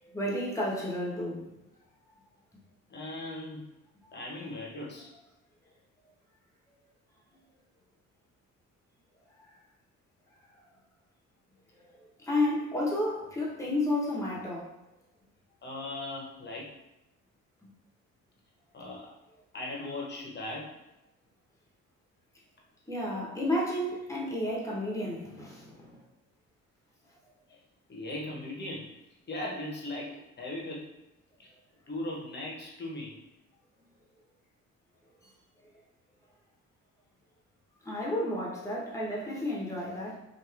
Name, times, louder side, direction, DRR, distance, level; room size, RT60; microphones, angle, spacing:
voice 1, 0.0-1.5 12.2-14.7 17.6-17.7 22.9-26.0 37.8-40.2, left 1 dB, 10° left, -4 dB, 0.9 m, -31 dB
voice 2, 2.9-3.7 4.1-5.1 15.6-16.7 18.7-19.1 19.5-20.7 23.1-23.2 27.5-27.6 27.9-28.9 29.3-30.9 31.4-31.5 31.9-33.2, left 1 dB, 35° left, -2 dB, 0.9 m, -38 dB
3.0 x 2.5 x 2.4 m, 0.97 s
cardioid pair, 90°, 30 cm